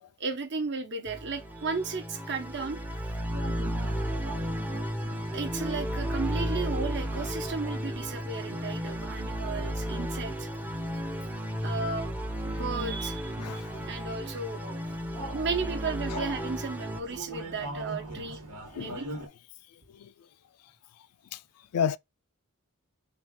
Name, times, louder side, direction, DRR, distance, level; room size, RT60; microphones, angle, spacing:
voice 1, 0.2-2.8 5.3-10.5 11.6-12.1 12.4-13.3 13.9-14.6 15.3-18.4 18.7-19.1, right 4 dB, 55° right, 1.0 m, -34 dB
sound 1, 1.1-17.0, equal, 10° right, 0.6 m, -33 dB
sound 2, 3.3-19.3, right 1 dB, 90° right, 1.4 m, -45 dB
voice 2, 13.4-13.9 18.7-19.0 19.9-20.1 21.3-21.4 21.7-22.0, left 7 dB, 85° left, 0.4 m, -31 dB
3.8 x 2.4 x 3.6 m
head